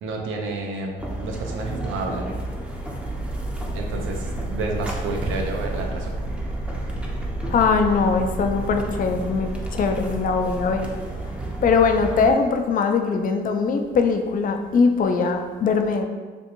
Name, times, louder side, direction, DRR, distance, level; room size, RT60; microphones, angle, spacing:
voice 1, 0.0-2.4 3.7-6.2, right 3 dB, 80° right, 2 dB, 0.6 m, -30 dB
sound 1, 1.0-12.3, right 1 dB, 5° right, 0.5 m, -30 dB
voice 2, 7.5-10.9 11.6-16.0, left 5 dB, 45° left, 6 dB, 0.4 m, -21 dB
3.5 x 2.4 x 2.9 m, 1.4 s
cardioid pair, 90°, 20 cm